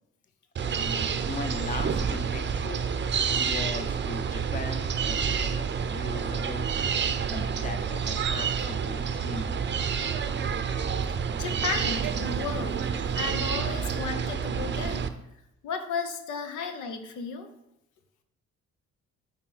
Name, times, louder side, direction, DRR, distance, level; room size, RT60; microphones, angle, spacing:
voice 1, 0.6-2.8 3.4-6.7 7.3-9.6, left 3 dB, 25° left, 7 dB, 0.7 m, -39 dB
sound 1, 0.6-15.1, right 6 dB, 40° right, 0.6 m, -29 dB
voice 2, 11.4-15.1 15.6-17.5, left 5 dB, 80° left, 6 dB, 0.9 m, -34 dB
9.0 x 4.2 x 4.0 m, 0.86 s
cardioid pair, 90°, 30 cm